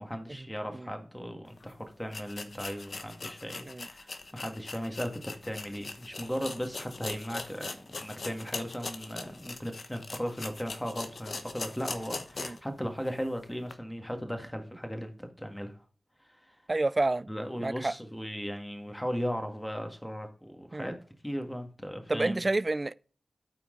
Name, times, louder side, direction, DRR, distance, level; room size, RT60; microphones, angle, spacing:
voice 1, 0.0-15.1 15.4-15.7 16.4-16.6 17.3-20.9 21.2-22.4, equal, 10° left, 1.7 m, -37 dB
sound 1, 1.6-1.7 2.1-12.7 13.1-13.2 13.7-13.8, left 3 dB, 65° left, 0.9 m, -41 dB
voice 2, 16.7-17.3 17.6-17.9 20.7-20.9 22.1-22.9, right 2 dB, 40° right, 0.3 m, -29 dB
13.0 x 4.5 x 3.8 m
cardioid pair, 40°, 0 cm